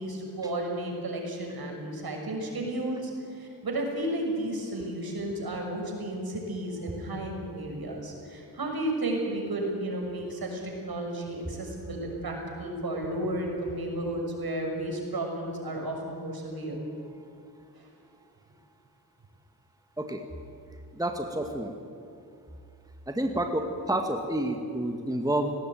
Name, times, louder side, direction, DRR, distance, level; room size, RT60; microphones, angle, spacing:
voice 1, 0.0-16.8 17.8-17.9, right 1 dB, 60° right, 1 dB, 6.5 m, -33 dB
voice 2, 20.9-21.7 23.1-25.5, right 1 dB, 10° right, 4 dB, 2.0 m, -29 dB
18.5 x 18.0 x 9.4 m, 2.6 s
cardioid pair, 55°, 40 cm